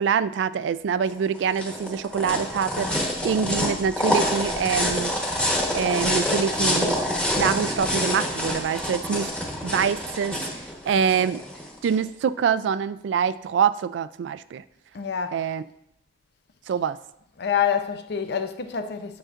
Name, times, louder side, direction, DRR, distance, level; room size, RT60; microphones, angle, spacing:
voice 1, 0.0-5.3 5.7-9.3 9.6-10.4 10.8-11.4 11.8-14.6 15.3-15.6 16.7-17.0, right 7 dB, 75° right, 0.3 m, -25 dB
sound 1, 1.1-11.9, left 1 dB, 5° left, 1.1 m, -27 dB
voice 2, 14.9-15.5 17.4-19.2, left 7 dB, 60° left, 0.5 m, -27 dB
9.0 x 6.2 x 2.5 m
head